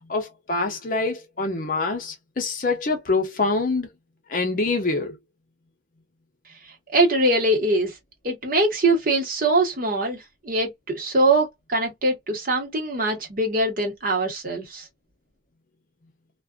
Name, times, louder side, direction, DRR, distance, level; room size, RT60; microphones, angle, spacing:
voice 1, 0.0-3.9 4.3-5.2, left 3 dB, 45° left, 0.7 m, -25 dB
voice 2, 6.9-7.9 8.2-10.2 10.4-14.8, right 2 dB, 45° right, 1.1 m, -22 dB
2.4 x 2.4 x 2.2 m
head